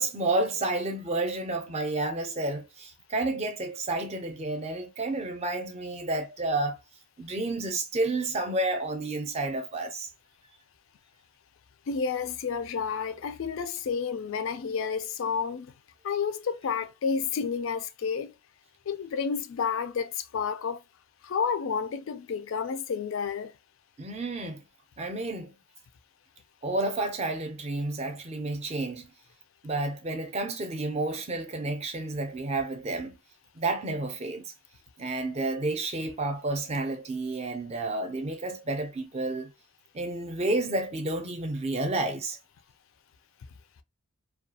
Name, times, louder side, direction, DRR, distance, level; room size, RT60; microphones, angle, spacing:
voice 1, 0.0-6.8 7.2-10.1 24.0-24.6 25.0-25.5 26.6-29.1 29.6-33.2 33.6-34.4 35.0-39.5 39.9-42.4, right 2 dB, 30° right, 0.5 m, -30 dB
voice 2, 11.9-15.7 16.0-18.3 18.9-20.8 21.2-23.5, left 6 dB, 70° left, 0.3 m, -30 dB
2.3 x 2.3 x 2.7 m
head